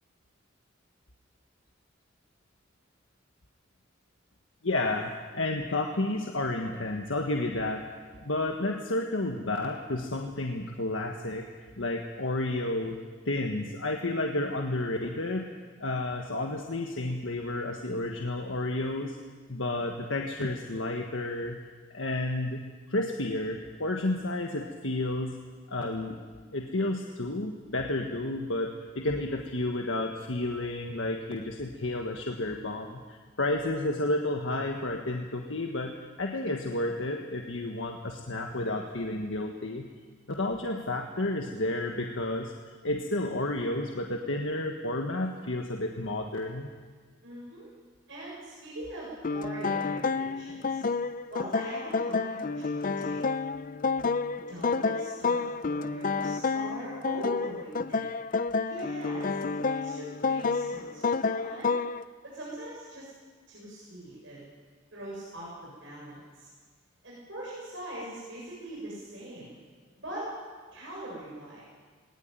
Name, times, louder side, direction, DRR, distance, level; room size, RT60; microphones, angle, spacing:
voice 1, 4.6-7.8 8.2-11.5 11.8-13.0 13.2-15.5 15.8-19.2 19.5-21.6 21.9-22.6 22.9-25.4 25.7-26.2 26.5-39.9 40.4-42.5 42.8-46.7, left 2 dB, 85° left, 2 dB, 1.6 m, -31 dB
voice 2, 47.2-47.7 48.1-50.8 51.3-53.2 54.5-58.1 58.7-61.8 62.2-63.1 63.5-64.5 64.9-66.5 67.0-69.6 70.0-70.3 70.7-71.6, right 1 dB, 75° right, -6 dB, 7.3 m, -42 dB
sound 1, 49.2-62.0, left 4 dB, 45° left, 0.5 m, -30 dB
19.5 x 19.5 x 9.2 m, 1.6 s
head